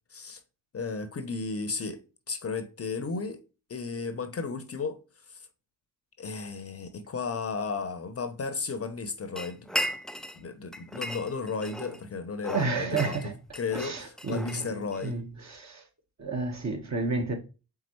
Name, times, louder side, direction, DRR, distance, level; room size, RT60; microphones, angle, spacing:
voice 1, 0.7-3.4 3.7-5.0 5.3-5.5 6.2-9.7 10.3-13.2 13.5-15.2, left 4 dB, 35° left, 0.7 m, -34 dB
sound 1, 9.4-10.4 10.7-12.0 12.4-15.1, equal, ahead, 0.3 m, -36 dB
voice 2, 12.5-13.3 13.7-15.8 16.2-17.4, right 3 dB, 40° right, 1.3 m, -31 dB
4.5 x 3.6 x 3.0 m
supercardioid pair, 60°, 42 cm